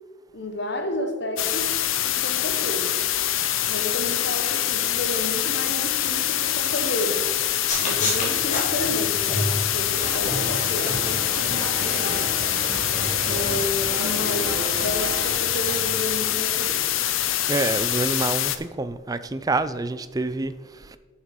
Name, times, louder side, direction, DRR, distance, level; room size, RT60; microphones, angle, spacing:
voice 1, 0.3-1.7 2.0-3.0 3.6-7.3 7.8-12.2 13.3-16.8, left 1 dB, 60° left, 6 dB, 1.3 m, -31 dB
sound 1, 1.4-18.6, left 12 dB, 85° left, 0.6 m, -25 dB
sound 2, 7.7-16.3, left 1 dB, 40° left, 2.8 m, -33 dB
sound 3, 9.9-15.3, right 2 dB, 50° right, 1.2 m, -34 dB
voice 2, 17.5-21.0, right 2 dB, 20° right, 12 dB, 0.4 m, -27 dB
8.5 x 7.3 x 5.2 m, 1.3 s
head